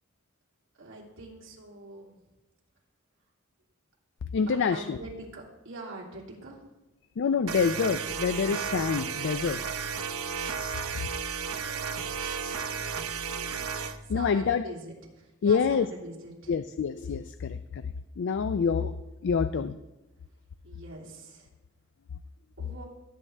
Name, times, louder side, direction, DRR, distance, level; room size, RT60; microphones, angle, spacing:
voice 1, 0.8-2.1 4.5-6.7 11.5-11.9 13.3-13.7 14.1-16.5 18.8-18.9 20.6-21.5 22.6-22.8, right 2 dB, 65° right, -2 dB, 2.9 m, -44 dB
voice 2, 4.3-5.0 7.2-9.6 14.1-14.6 15.4-15.9 16.5-17.8 18.2-18.9 19.2-19.8, left 6 dB, 60° left, 11 dB, 0.4 m, -26 dB
sound 1, 7.5-14.0, right 6 dB, 85° right, 0.8 m, -33 dB
17.0 x 8.6 x 3.3 m, 1.0 s
head